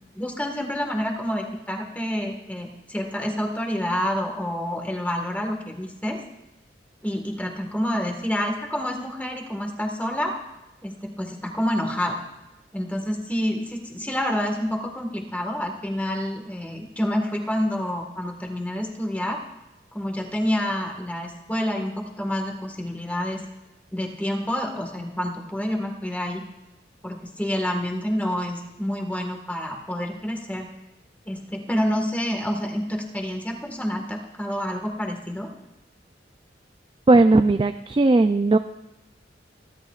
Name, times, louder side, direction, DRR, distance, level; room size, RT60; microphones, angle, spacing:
voice 1, 0.1-6.2 7.0-10.3 10.8-12.2 12.7-19.4 19.9-23.4 23.9-26.5 27.0-30.7 31.2-35.5, equal, 10° left, 1 dB, 1.6 m, -28 dB
voice 2, 37.1-38.6, right 2 dB, 25° right, 8 dB, 0.4 m, -17 dB
28.0 x 11.0 x 2.5 m, 1.0 s
head